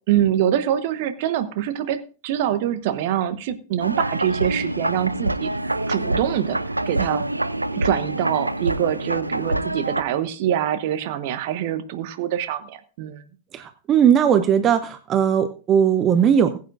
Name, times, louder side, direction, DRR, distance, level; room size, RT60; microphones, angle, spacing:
voice 1, 0.1-5.5 5.9-6.6 6.9-7.2 7.7-13.2, right 11 dB, 50° right, 11 dB, 1.0 m, -24 dB
sound 1, 3.8-10.0, right 1 dB, 85° right, 0.4 m, -26 dB
voice 2, 13.5-16.6, right 8 dB, 30° right, 10 dB, 0.7 m, -18 dB
20.0 x 8.5 x 2.5 m, 0.36 s
figure-of-eight pair, 90°, 0 cm